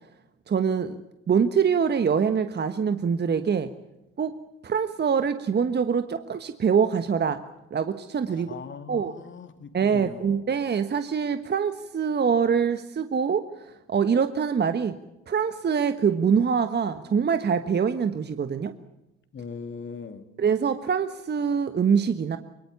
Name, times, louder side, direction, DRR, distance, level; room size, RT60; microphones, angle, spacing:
voice 1, 0.5-1.0 1.3-3.7 4.2-4.3 4.6-7.4 7.7-8.5 8.9-9.1 9.7-15.0 15.3-18.7 20.4-22.4, right 6 dB, 30° right, 10 dB, 1.4 m, -24 dB
voice 2, 8.3-10.4 19.3-20.2, left 5 dB, 35° left, 8 dB, 2.9 m, -40 dB
23.0 x 22.5 x 7.0 m, 0.95 s
hypercardioid pair, 65°, 33 cm